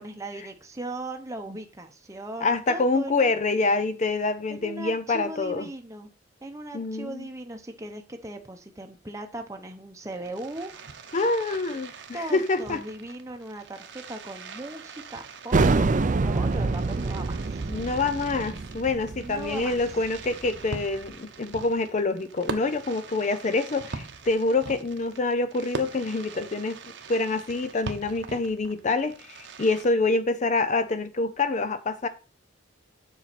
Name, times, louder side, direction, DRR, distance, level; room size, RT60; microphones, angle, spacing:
voice 1, 0.0-3.4 4.5-6.1 6.4-11.1 12.1-15.9 16.2-17.6 19.2-19.8, right 2 dB, 15° right, 0.8 m, -38 dB
voice 2, 2.4-5.7 6.7-7.3 11.1-12.8 17.7-26.8 27.1-32.1, left 3 dB, 40° left, 0.5 m, -26 dB
Fireworks, 10.0-29.8, right 4 dB, 65° right, 0.9 m, -42 dB
sound 1, 15.5-20.8, right 3 dB, 40° right, 0.5 m, -26 dB
7.4 x 5.6 x 4.1 m
head